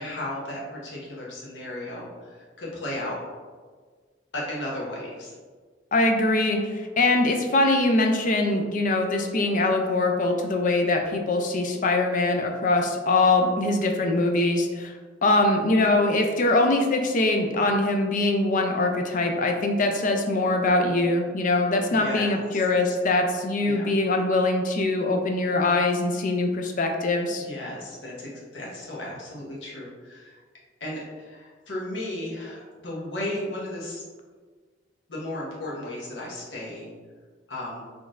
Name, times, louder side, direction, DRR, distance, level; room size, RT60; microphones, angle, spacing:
voice 1, 0.0-3.2 4.3-5.3 21.9-22.6 23.6-23.9 27.3-30.4 30.8-34.0 35.1-36.9 37.5-37.8, left 1 dB, 65° left, -5 dB, 0.9 m, -35 dB
voice 2, 5.9-14.9 15.2-27.4, left 2 dB, 45° left, 4 dB, 0.4 m, -23 dB
4.0 x 3.2 x 2.5 m, 1.5 s
head